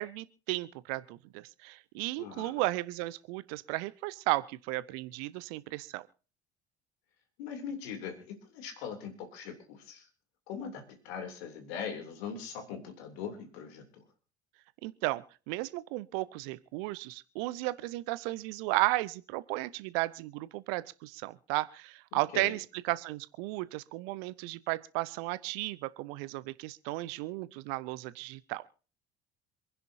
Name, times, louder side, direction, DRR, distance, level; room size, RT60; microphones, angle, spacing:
voice 1, 0.0-6.1 14.8-28.6, right 19 dB, 60° right, 19 dB, 0.8 m, -34 dB
voice 2, 2.2-2.6 7.4-10.1 10.5-14.0 22.1-22.5, left 7 dB, 65° left, 4 dB, 3.1 m, -41 dB
27.0 x 10.5 x 2.7 m, 0.38 s
figure-of-eight pair, 60°, 33 cm